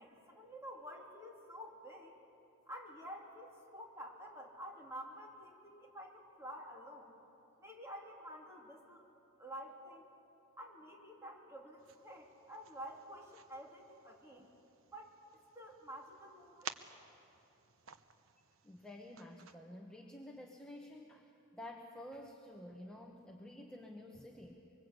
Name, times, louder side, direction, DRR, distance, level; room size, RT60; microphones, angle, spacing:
voice 1, 0.0-2.2 2.7-7.1 7.6-9.0 9.4-10.1 10.6-14.5 14.9-15.1 15.5-16.7, equal, 15° right, -1 dB, 3.2 m, -50 dB
sound 1, 11.8-19.6, right 7 dB, 75° right, 0.9 m, -54 dB
voice 2, 18.6-24.7, left 1 dB, 5° left, 0 dB, 1.3 m, -51 dB
24.5 x 23.5 x 8.3 m, 2.9 s
head